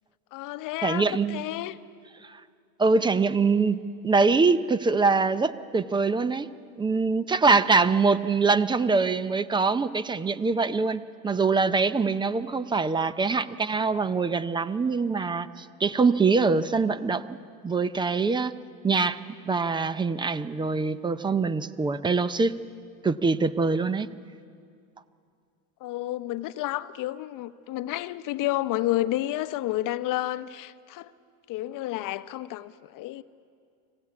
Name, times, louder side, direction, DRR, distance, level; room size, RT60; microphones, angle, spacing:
voice 1, 0.3-1.8 25.8-31.1 31.5-33.2, left 15 dB, 45° left, 0.9 m, -30 dB
voice 2, 0.8-1.4 2.2-2.4 2.8-6.5 6.8-17.4 17.6-18.5 18.8-19.2 19.5-22.5 23.0-24.1, right 4 dB, 10° right, 0.5 m, -24 dB
25.0 x 17.0 x 8.4 m
supercardioid pair, 120°, 44 cm